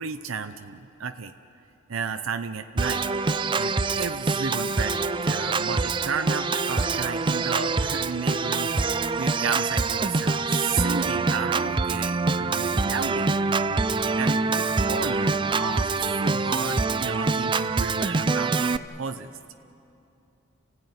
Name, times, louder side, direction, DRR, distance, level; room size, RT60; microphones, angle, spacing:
voice 1, 0.0-1.3 1.9-3.0 3.6-13.3 14.2-19.3, right 5 dB, 85° right, 8 dB, 0.7 m, -33 dB
Organ, 2.8-18.8, right 3 dB, 25° right, 0.5 m, -25 dB
29.0 x 16.0 x 9.6 m, 2.8 s
head